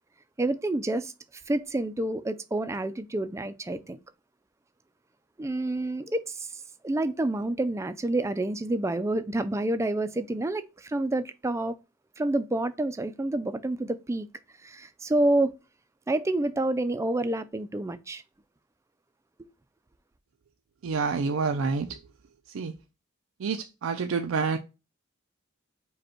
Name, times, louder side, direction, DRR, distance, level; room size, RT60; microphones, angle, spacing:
voice 1, 0.4-1.1 1.5-4.0 5.4-11.8 12.2-14.3 14.6-15.5 16.1-18.2 19.4-19.5, right 2 dB, 15° right, 0.3 m, -28 dB
voice 2, 20.8-22.0 22.5-22.7 23.4-24.6, right 4 dB, 90° right, 0.4 m, -28 dB
5.1 x 2.3 x 4.3 m
head